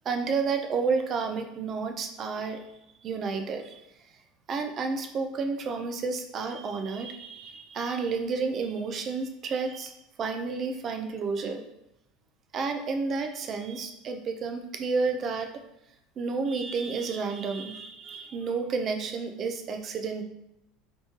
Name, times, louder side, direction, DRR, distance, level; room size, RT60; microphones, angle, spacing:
voice 1, 0.0-2.6 3.0-3.8 4.5-11.6 12.5-15.5 16.2-20.2, right 4 dB, 25° right, 5 dB, 0.3 m, -31 dB
3.5 x 2.8 x 2.7 m, 0.85 s
cardioid pair, 170°, 0 cm